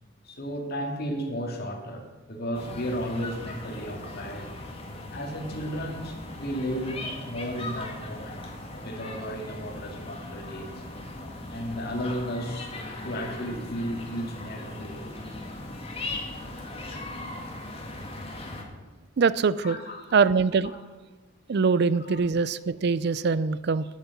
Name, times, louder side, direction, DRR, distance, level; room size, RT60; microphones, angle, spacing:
voice 1, 0.2-4.5 5.1-8.4 8.7-10.7 11.5-12.7 13.0-15.1 19.6-20.0 22.0-22.2, equal, 55° left, 2 dB, 2.2 m, -34 dB
sound 1, 2.5-18.6, left 2 dB, 30° left, 1.9 m, -39 dB
voice 2, 19.2-19.8 20.1-20.7 21.5-23.9, right 5 dB, 55° right, 17 dB, 0.4 m, -23 dB
10.5 x 9.5 x 7.3 m, 1.3 s
head